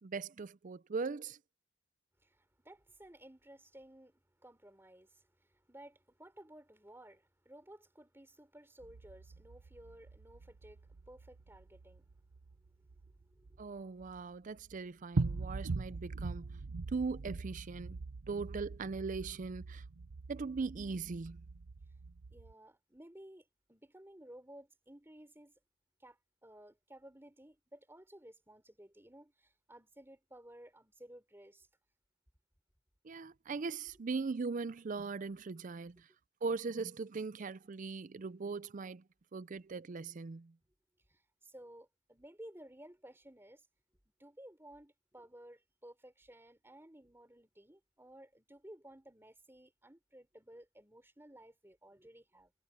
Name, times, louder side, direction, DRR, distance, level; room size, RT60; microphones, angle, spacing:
voice 1, 0.0-1.4 13.6-16.6 16.9-18.0 18.3-19.8 20.3-21.4 33.0-36.1 36.4-39.0 39.3-40.5, right 4 dB, 35° right, 0.4 m, -40 dB
voice 2, 2.2-12.1 12.8-13.8 22.3-25.5 26.0-31.7 41.1-43.7 44.2-52.5, right 1 dB, 10° right, 3.6 m, -56 dB
sound 1, 8.8-14.2 14.6-14.8 15.1-22.5, right 3 dB, 80° right, 0.7 m, -42 dB
head